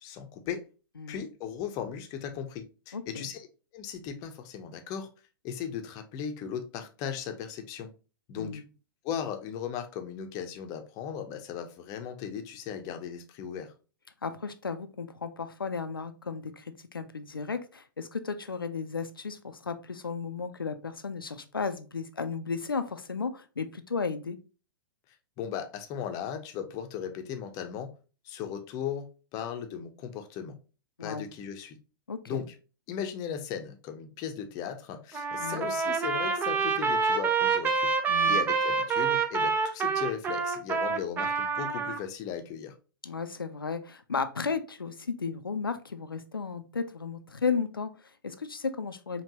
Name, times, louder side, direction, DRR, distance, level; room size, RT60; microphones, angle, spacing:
voice 1, 0.0-0.6 1.1-3.5 3.7-5.1 5.4-7.9 8.3-8.6 9.0-13.7 25.4-27.9 28.2-30.6 31.0-31.8 32.3-32.5 32.9-37.9 38.3-42.7, left 8 dB, 30° left, 0.7 m, -37 dB
voice 2, 2.9-3.3 8.3-8.6 14.2-24.4 31.0-31.3 32.1-32.5 35.4-35.7 38.1-38.4 43.0-49.2, left 5 dB, 85° left, 0.5 m, -34 dB
Trumpet, 35.1-42.0, right 5 dB, 15° right, 0.5 m, -27 dB
4.5 x 2.9 x 2.7 m
figure-of-eight pair, 105°, 11 cm